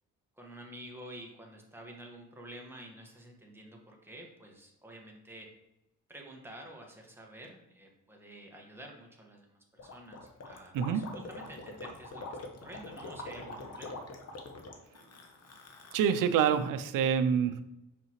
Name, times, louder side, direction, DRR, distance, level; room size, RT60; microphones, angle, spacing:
voice 1, 0.4-5.5 6.1-14.0, right 1 dB, 5° right, 0 dB, 1.6 m, -49 dB
Gurgling, 9.8-16.7, left 2 dB, 50° left, 1.1 m, -45 dB
voice 2, 10.7-11.1 15.9-17.6, right 8 dB, 90° right, 12 dB, 0.5 m, -27 dB
5.9 x 5.3 x 3.1 m, 0.90 s
cardioid pair, 80°, 31 cm